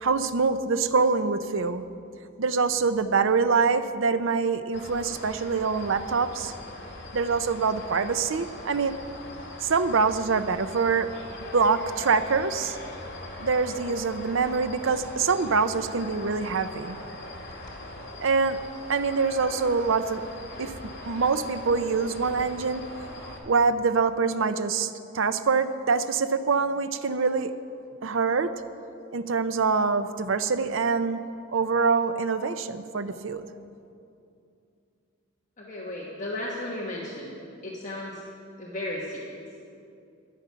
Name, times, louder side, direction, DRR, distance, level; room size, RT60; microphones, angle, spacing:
voice 1, 0.0-1.9 2.4-6.5 7.1-8.9 9.6-11.1 11.5-12.8 13.4-17.0 18.2-18.6 18.9-20.2 20.6-20.7 21.1-22.8 23.3-27.5 28.0-28.5 29.1-31.2 31.5-33.5, right 4 dB, 70° right, 11 dB, 0.6 m, -25 dB
sound 1, 4.7-23.4, left 1 dB, 55° left, 2.1 m, -41 dB
voice 2, 35.6-38.2 38.6-39.4, left 1 dB, 35° left, -4 dB, 1.3 m, -35 dB
13.0 x 10.5 x 5.7 m, 2.6 s
head